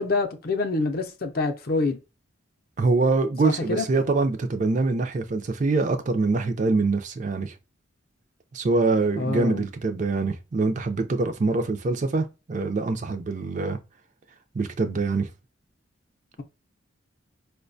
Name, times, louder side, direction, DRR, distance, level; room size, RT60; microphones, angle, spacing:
voice 1, 0.0-2.0 3.4-3.9 9.2-9.6, left 3 dB, 45° left, 0.5 m, -26 dB
voice 2, 2.8-7.5 8.5-13.8 14.5-15.3, right 3 dB, 35° right, 0.4 m, -24 dB
4.7 x 2.2 x 2.5 m
head